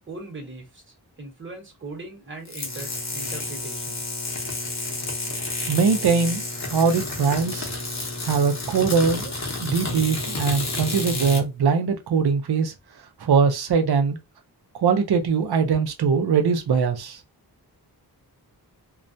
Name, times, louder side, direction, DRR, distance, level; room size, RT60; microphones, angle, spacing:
voice 1, 0.1-4.0, right 2 dB, 30° right, 1.0 m, -39 dB
sound 1, 2.5-11.4, left 2 dB, 45° left, 0.8 m, -30 dB
voice 2, 5.7-6.5 6.7-7.7 8.2-9.3 9.6-12.7 13.2-14.2 14.8-17.2, right 5 dB, 70° right, 0.6 m, -21 dB
2.3 x 2.1 x 2.6 m
wide cardioid pair, 65°, 40 cm